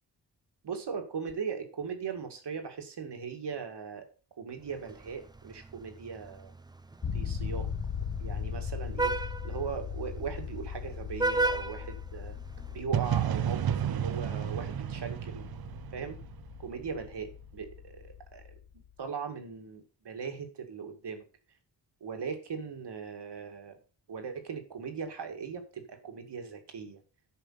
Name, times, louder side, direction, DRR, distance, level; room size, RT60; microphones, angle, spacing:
voice 1, 0.6-4.1 4.4-6.5 7.1-7.7 8.2-12.4 12.7-15.4 15.9-16.2 16.6-17.3 17.5-18.0 18.3-21.2 22.0-23.8 24.1-27.0, right 6 dB, 75° right, 6 dB, 2.2 m, -39 dB
Vehicle horn car horn honking, 4.7-12.8, right 2 dB, 10° right, 0.6 m, -36 dB
sound 1, 7.0-18.9, left 7 dB, 35° left, 1.5 m, -39 dB
sound 2, 12.9-16.8, right 10 dB, 60° right, 0.6 m, -32 dB
10.5 x 5.6 x 5.7 m, 0.35 s
wide cardioid pair, 130°, 42 cm